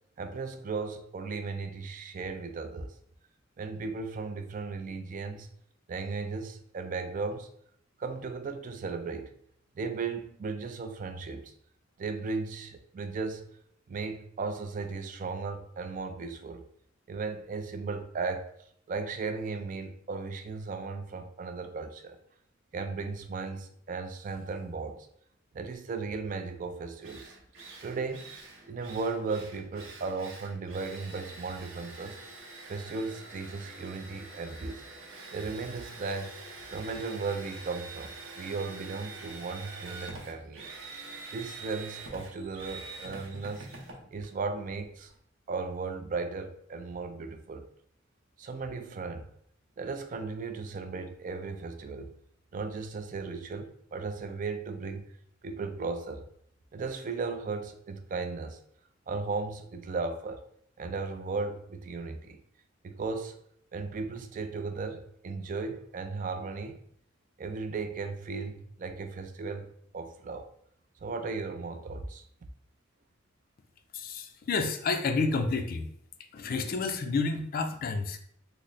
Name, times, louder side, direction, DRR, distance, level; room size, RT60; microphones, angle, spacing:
voice 1, 0.2-2.9 3.6-5.5 5.9-7.5 8.0-9.3 9.8-11.5 12.0-13.5 13.9-16.6 17.1-18.5 18.9-22.2 22.7-25.1 25.5-27.4 27.8-28.4 28.7-32.2 32.7-34.8 35.3-40.7 41.3-43.7 44.1-45.1 45.5-47.6 48.4-49.3 49.8-52.1 52.5-55.1 55.4-56.3 56.7-58.6 59.1-60.4 60.8-62.4 62.8-63.4 63.7-66.8 67.4-70.5 71.0-72.2, right 4 dB, 40° right, 0.3 m, -36 dB
Drill, 26.6-26.7 27.0-45.1, right 3 dB, 70° right, 0.8 m, -46 dB
voice 2, 73.9-75.9 76.3-78.2, left 4 dB, 45° left, 0.4 m, -30 dB
3.2 x 2.0 x 3.9 m
head